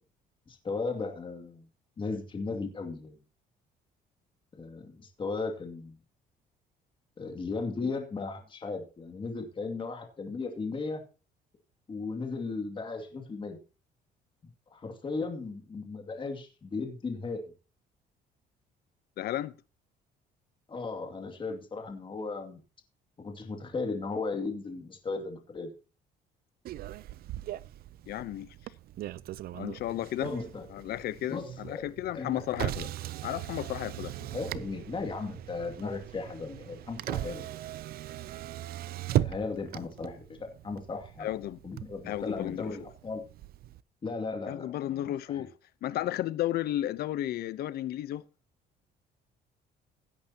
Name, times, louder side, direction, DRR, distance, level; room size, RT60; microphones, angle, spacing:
voice 1, 0.5-1.6 2.0-3.2 4.6-6.0 7.2-11.0 11.9-13.6 14.7-17.5 20.7-22.6 23.2-25.7 30.2-30.7 31.3-31.8 32.1-32.4 34.3-37.4 39.2-41.3 41.6-43.2 44.0-45.5, left 4 dB, 30° left, 2.4 m, -36 dB
voice 2, 19.2-19.5 28.1-28.5 29.5-30.3 30.7-32.9 33.2-34.1 41.2-41.6 42.1-42.9 44.5-45.5 45.8-48.2, left 13 dB, 70° left, 0.8 m, -33 dB
Motor vehicle (road), 26.6-43.8, right 13 dB, 65° right, 0.6 m, -38 dB
16.5 x 8.7 x 2.9 m
cardioid pair, 110°, 17 cm